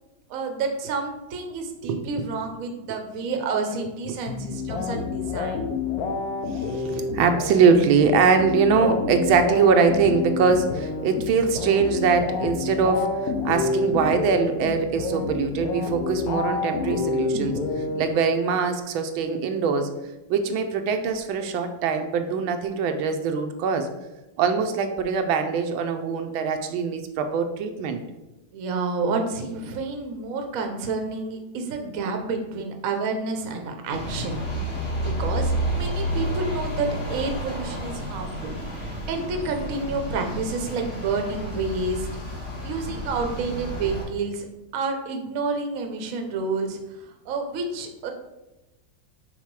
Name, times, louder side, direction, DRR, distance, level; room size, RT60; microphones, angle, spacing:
voice 1, 0.3-5.6 28.5-34.4 35.0-42.1 42.3-44.4 44.7-48.1, right 4 dB, 55° right, 4 dB, 1.0 m, -29 dB
sound 1, 4.3-18.6, left 4 dB, 65° left, 0.9 m, -28 dB
voice 2, 6.5-19.9 20.3-23.9 24.4-28.0, right 5 dB, 85° right, 6 dB, 1.4 m, -22 dB
sound 2, 33.9-44.0, equal, 35° left, 2.4 m, -30 dB
5.7 x 4.0 x 4.6 m, 1.0 s
omnidirectional pair, 2.2 m